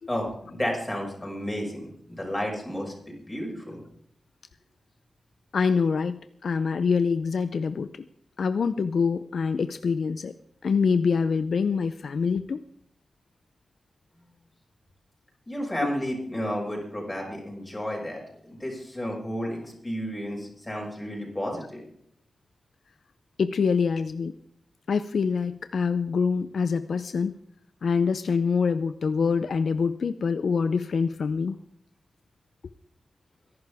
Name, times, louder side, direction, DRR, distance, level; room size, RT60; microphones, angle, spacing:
voice 1, 0.1-1.8 2.1-3.8 15.5-21.8, equal, 15° left, -1 dB, 5.7 m, -32 dB
voice 2, 5.5-7.9 8.4-10.3 10.6-12.6 23.4-24.4 24.9-27.3 27.8-31.6, left 5 dB, 65° left, 11 dB, 0.5 m, -25 dB
24.0 x 11.5 x 3.5 m, 0.68 s
wide cardioid pair, 130°, 0 cm